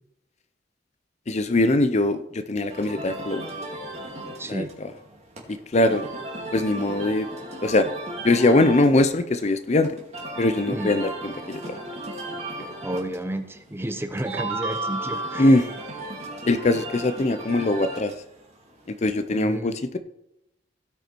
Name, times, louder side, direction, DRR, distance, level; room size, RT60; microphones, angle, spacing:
voice 1, 1.3-3.4 4.5-4.6 5.7-6.0 6.5-7.3 7.6-7.9 8.2-9.9 10.4-11.8 15.4-15.6 16.5-18.1 19.0-20.0, left 2 dB, 40° left, 10 dB, 0.6 m, -21 dB
sound 1, 2.7-19.4, right 1 dB, 35° right, 2.3 m, -35 dB
voice 2, 4.4-4.7 10.7-10.9 12.8-15.6 19.3-19.8, right 1 dB, 15° right, 8 dB, 0.8 m, -31 dB
16.5 x 5.6 x 4.5 m, 0.84 s
head